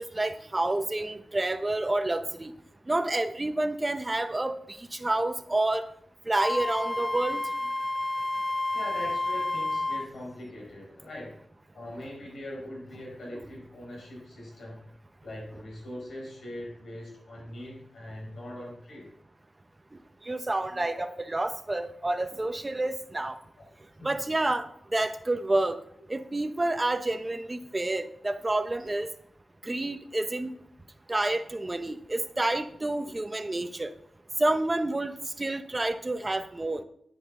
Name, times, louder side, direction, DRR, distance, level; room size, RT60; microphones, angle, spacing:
voice 1, 0.0-2.5 2.9-5.9 6.3-7.4 20.2-23.4 24.0-24.7 24.9-25.8 26.1-29.1 29.6-30.5 31.1-33.9 34.4-36.8, right 2 dB, 25° right, 9 dB, 1.0 m, -29 dB
Wind instrument woodwind instrument, 6.4-10.1, left 2 dB, 10° left, 0.4 m, -30 dB
voice 2, 8.7-11.4 11.7-14.8 15.2-19.1 20.7-21.1 23.6-23.7 24.0-24.1, left 1 dB, 80° left, -3 dB, 5.1 m, -41 dB
10.0 x 9.9 x 3.9 m, 0.69 s
cardioid pair, 70°, 0 cm